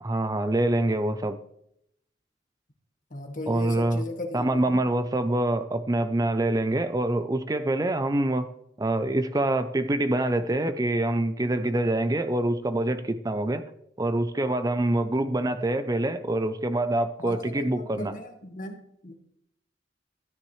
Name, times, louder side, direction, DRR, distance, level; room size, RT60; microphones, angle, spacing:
voice 1, 0.0-1.4 3.5-4.0 4.3-8.5 8.8-13.6 14.0-18.1, right 1 dB, 20° right, 10 dB, 0.5 m, -25 dB
voice 2, 3.1-4.9 15.2-15.5 17.2-19.1, left 2 dB, 45° left, 4 dB, 1.5 m, -38 dB
13.0 x 10.5 x 3.2 m, 0.76 s
head